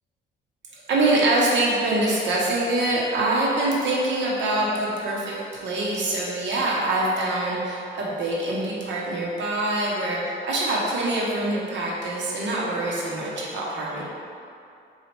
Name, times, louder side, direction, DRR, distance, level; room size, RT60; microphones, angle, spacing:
voice 1, 0.9-14.0, right 2 dB, 65° right, -4 dB, 1.0 m, -24 dB
4.0 x 2.4 x 4.5 m, 2.5 s
cardioid pair, 90°, 20 cm